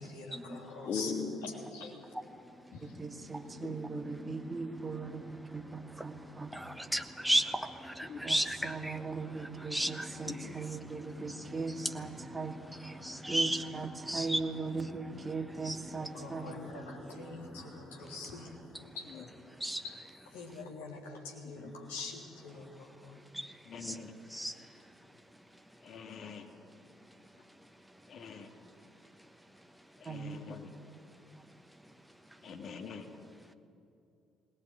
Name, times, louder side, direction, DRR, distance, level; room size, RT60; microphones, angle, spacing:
voice 1, 0.1-1.1 1.4-2.0 2.7-2.9 16.0-18.5 18.9-19.1 19.8-20.0 20.3-23.2, left 3 dB, 75° left, -1 dB, 3.3 m, -44 dB
voice 2, 0.9-1.3 8.1-8.2 10.3-10.5 23.7-24.0 25.9-26.4 28.1-28.4 30.1-30.6 32.5-33.0, left 6 dB, 50° left, 5 dB, 2.4 m, -40 dB
voice 3, 3.0-5.2 5.5-6.5 8.2-12.5 13.3-16.5 30.1-30.5, right 4 dB, 25° right, 5 dB, 2.3 m, -39 dB
voice 4, 6.5-9.0 9.7-10.1 12.8-13.6 14.1-14.4 15.6-15.8 19.6-19.8 23.8-23.9 24.3-24.5, right 1 dB, 5° right, 7 dB, 1.2 m, -32 dB
19.5 x 19.0 x 9.4 m, 2.5 s
figure-of-eight pair, 50°, 0 cm